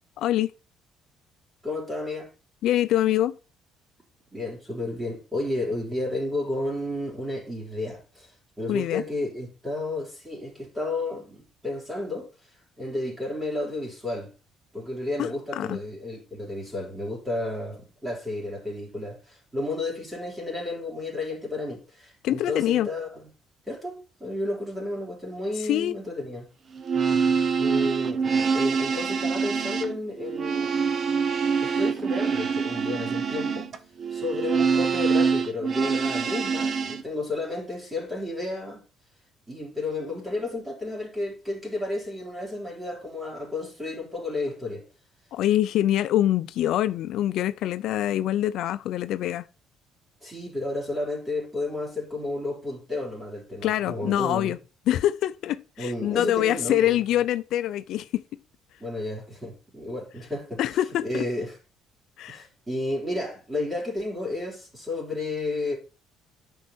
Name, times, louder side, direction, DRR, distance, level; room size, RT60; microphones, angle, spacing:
voice 1, 0.2-0.5 2.6-3.3 8.7-9.0 15.2-15.8 22.2-22.9 25.7-25.9 45.3-49.4 53.6-54.6 54.9-58.2 60.6-61.2 62.2-62.5, left 12 dB, 70° left, 0.5 m, -25 dB
voice 2, 1.6-2.3 4.3-12.3 12.8-14.3 14.7-23.2 23.7-26.5 27.6-28.2 28.5-30.7 31.6-33.7 34.1-38.8 39.5-44.9 50.2-54.5 55.8-57.0 58.8-60.6 61.0-61.6 62.3-65.8, left 2 dB, 10° right, 4.1 m, -32 dB
sound 1, 26.7-37.0, right 5 dB, 35° right, 0.9 m, -25 dB
9.7 x 5.5 x 4.4 m
cardioid pair, 135°, 0 cm